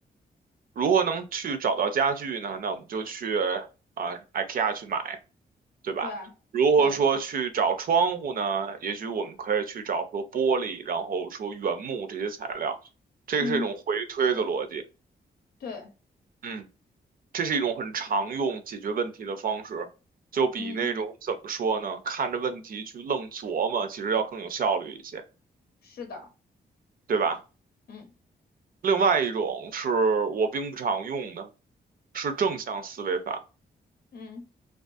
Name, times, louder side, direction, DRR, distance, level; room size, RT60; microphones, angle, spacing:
voice 1, 0.8-3.7 4.0-5.2 5.8-6.1 6.5-12.8 13.3-14.8 16.4-16.7 17.3-19.9 20.3-25.2 27.1-27.4 28.8-31.5 32.1-33.4, right 5 dB, 60° right, 0.4 m, -27 dB
voice 2, 15.6-15.9 20.6-20.9 25.8-26.3 27.9-28.1 34.1-34.5, left 4 dB, 65° left, 0.6 m, -36 dB
2.4 x 2.3 x 2.4 m
cardioid pair, 110°, 17 cm